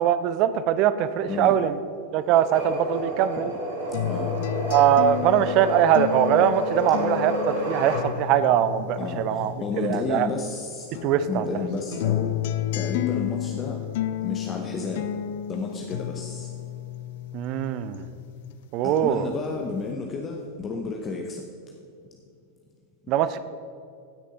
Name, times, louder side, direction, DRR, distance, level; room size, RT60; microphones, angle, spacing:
voice 1, 0.0-1.8 2.1-3.5 4.7-10.3 11.0-11.5 17.3-18.1 18.7-19.3 23.1-23.4, right 10 dB, 40° right, 13 dB, 0.5 m, -22 dB
voice 2, 1.3-1.6 3.4-3.5 4.0-4.4 9.0-10.9 11.3-12.4 12.7-13.8 14.2-15.1 15.5-16.5 18.8-21.4, left 4 dB, 25° left, 1 dB, 0.9 m, -32 dB
sound 1, 2.3-8.1, right 1 dB, 60° right, 2.5 m, -30 dB
sound 2, 3.9-10.6 10.9-18.6 19.0-19.9, left 12 dB, 55° left, 0.4 m, -32 dB
16.5 x 6.5 x 3.9 m, 2.5 s
figure-of-eight pair, 90°, 0 cm